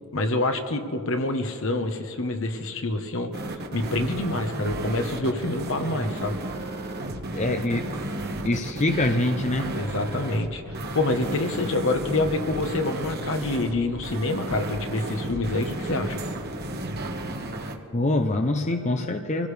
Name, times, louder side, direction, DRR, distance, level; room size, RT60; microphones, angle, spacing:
voice 1, 0.1-3.4 3.7-6.4 9.7-10.6 10.9-16.2, left 2 dB, 65° left, 6 dB, 1.2 m, -27 dB
sound 1, 3.3-17.8, right 1 dB, 50° right, 1.4 m, -33 dB
voice 2, 7.3-7.9 8.4-9.7 17.9-19.5, left 2 dB, 35° left, 6 dB, 0.6 m, -24 dB
25.5 x 16.0 x 3.4 m, 2.4 s
head